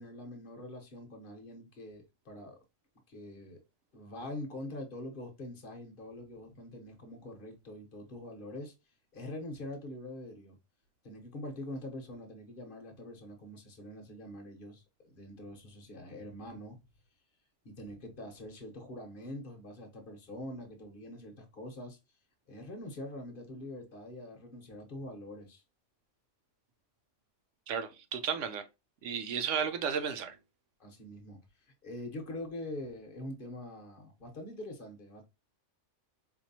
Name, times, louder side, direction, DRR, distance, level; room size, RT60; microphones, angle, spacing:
voice 1, 0.0-2.6 3.1-3.6 3.9-8.7 9.1-10.6 11.0-16.8 17.6-22.0 22.5-25.6 30.8-31.4 31.8-35.2, left 1 dB, 50° left, 1.1 m, -44 dB
voice 2, 27.7-28.6 29.0-30.4, right 7 dB, 85° right, 1.0 m, -33 dB
4.4 x 2.6 x 2.7 m
omnidirectional pair, 1.2 m